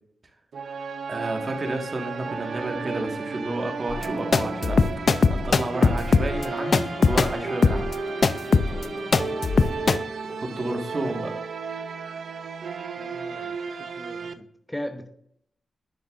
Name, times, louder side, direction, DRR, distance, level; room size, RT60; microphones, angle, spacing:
sound 1, 0.5-14.3, right 5 dB, 70° right, 0.6 m, -34 dB
voice 1, 1.1-4.8 5.3-7.9 10.2-11.4, right 2 dB, 40° right, 2 dB, 1.7 m, -31 dB
sound 2, 3.9-10.0, left 4 dB, 55° left, 0.5 m, -21 dB
voice 2, 8.6-9.1 13.0-15.1, left 1 dB, 10° left, 6 dB, 0.9 m, -39 dB
10.0 x 6.7 x 2.6 m, 0.68 s
cardioid pair, 65°, 0 cm